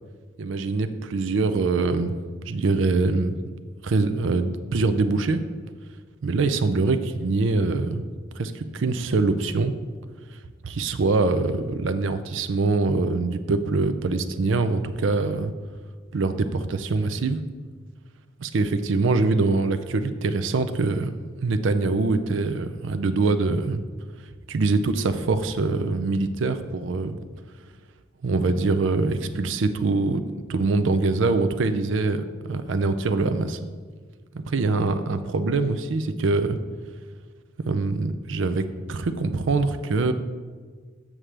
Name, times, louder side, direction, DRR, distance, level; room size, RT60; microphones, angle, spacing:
voice 1, 0.4-2.1 2.5-3.3 3.8-5.4 6.2-8.1 8.4-9.7 10.6-15.5 16.1-17.4 18.4-21.1 21.4-23.8 24.5-27.2 28.2-30.2 30.5-33.6 34.5-36.6 37.6-40.1, right 3 dB, 70° right, 10 dB, 0.5 m, -24 dB
7.3 x 6.3 x 3.3 m, 1.5 s
head